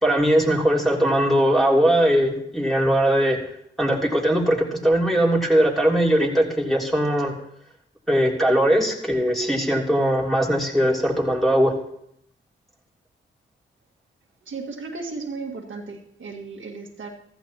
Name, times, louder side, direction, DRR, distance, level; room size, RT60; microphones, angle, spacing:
voice 1, 0.0-3.4 3.8-7.3 8.1-11.7, equal, ahead, -2 dB, 3.2 m, -20 dB
voice 2, 14.5-17.1, right 4 dB, 70° right, 1 dB, 1.7 m, -35 dB
15.0 x 14.0 x 2.9 m, 0.73 s
cardioid pair, 65°, 21 cm